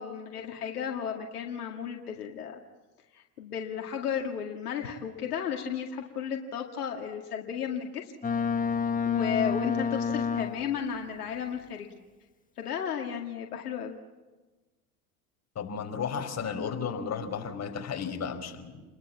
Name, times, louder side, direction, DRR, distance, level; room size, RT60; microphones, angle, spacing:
voice 1, 0.0-2.6 3.1-8.1 9.1-11.9 12.6-13.9, left 8 dB, 85° left, 2 dB, 2.2 m, -34 dB
Boat Water vehicle, 8.2-10.9, left 6 dB, 20° left, 1.5 m, -29 dB
voice 2, 15.5-18.8, left 6 dB, 35° left, 4 dB, 4.9 m, -34 dB
29.0 x 22.0 x 7.5 m, 1.2 s
hypercardioid pair, 80°, 44 cm